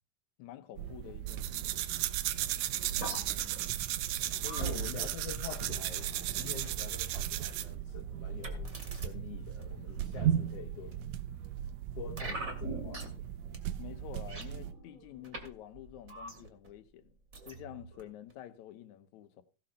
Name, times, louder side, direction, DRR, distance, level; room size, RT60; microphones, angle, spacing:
voice 1, 0.4-1.9 2.9-3.0 4.4-5.1 13.8-17.1 17.5-19.4, left 12 dB, 80° left, 2.4 m, -48 dB
sound 1, 0.8-14.7, right 10 dB, 70° right, 2.0 m, -38 dB
sound 2, 1.3-7.7, right 14 dB, 90° right, 2.3 m, -35 dB
voice 2, 2.9-3.2 4.6-10.9 12.0-13.3, left 8 dB, 60° left, 2.0 m, -46 dB
sound 3, 3.0-6.8 7.5-7.7 8.4-9.1 9.6-10.2 10.9-11.5 12.2-13.3 13.5-13.6 14.0-15.5 15.7-16.7 17.3-18.0 18.3-18.4, right 2 dB, 30° right, 2.6 m, -44 dB
16.5 x 6.8 x 5.5 m
omnidirectional pair, 3.3 m